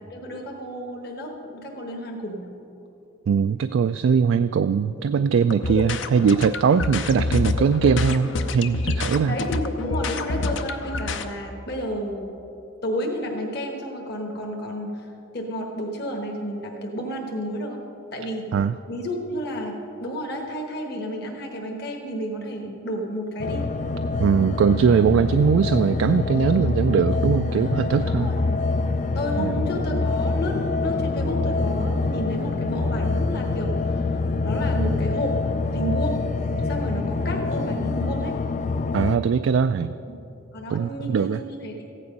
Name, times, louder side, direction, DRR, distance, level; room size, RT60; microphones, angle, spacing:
voice 1, 0.1-2.5 9.3-12.4 12.8-15.1 15.3-17.8 18.1-18.5 18.9-23.7 28.1-28.4 29.1-34.2 34.4-35.4 35.7-36.2 36.6-38.3 40.5-41.8, equal, 55° left, 1 dB, 1.3 m, -31 dB
voice 2, 3.3-9.4 18.5-18.7 24.2-28.3 29.4-29.6 38.9-40.0 40.7-41.4, right 6 dB, 75° right, 11 dB, 0.3 m, -21 dB
sound 1, 5.4-11.2, left 3 dB, 70° left, 0.7 m, -27 dB
sound 2, 23.4-39.2, left 3 dB, 40° left, 0.3 m, -25 dB
15.0 x 9.8 x 5.3 m, 2.9 s
head